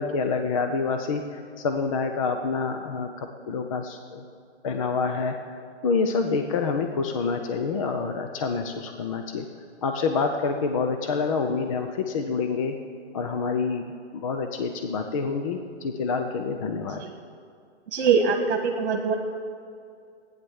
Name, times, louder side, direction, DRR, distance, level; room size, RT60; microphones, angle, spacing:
voice 1, 0.0-4.2 4.6-5.4 5.8-9.5 9.8-12.8 13.1-17.0, left 4 dB, 30° left, 5 dB, 0.6 m, -27 dB
voice 2, 17.9-19.1, right 5 dB, 55° right, 3 dB, 1.6 m, -23 dB
14.5 x 9.7 x 7.1 m, 2.4 s
hypercardioid pair, 160°, 35 cm